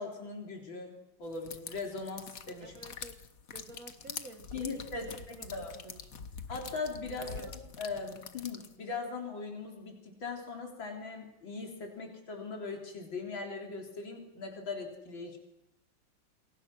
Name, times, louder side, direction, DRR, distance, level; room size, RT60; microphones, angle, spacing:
voice 1, 0.0-2.7 4.5-5.1 5.5-5.7 6.5-7.5 7.8-15.4, left 4 dB, 90° left, 2 dB, 4.4 m, -40 dB
sound 1, 1.3-8.8, left 6 dB, 50° left, 1.6 m, -45 dB
voice 2, 2.6-3.2 3.5-6.3 7.2-7.5, right 3 dB, 45° right, 9 dB, 1.9 m, -51 dB
28.5 x 22.5 x 6.3 m, 0.86 s
omnidirectional pair, 2.1 m